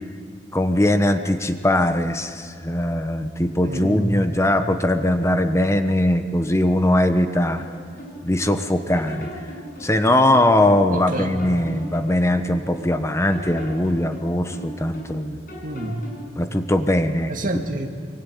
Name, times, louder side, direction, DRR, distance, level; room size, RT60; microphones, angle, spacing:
voice 1, 0.5-7.6 8.2-9.3 9.8-15.4 16.4-17.3, left 1 dB, 15° left, 8 dB, 1.1 m, -20 dB
voice 2, 3.6-4.2 10.9-11.4 15.6-16.1 17.3-17.9, right 1 dB, 50° right, 4 dB, 2.3 m, -28 dB
sound 1, 7.6-8.6 8.9-10.8 11.1-12.9 13.3-15.2 15.5-16.3, equal, 55° left, 7.5 m, -38 dB
24.5 x 24.0 x 9.4 m, 2.1 s
head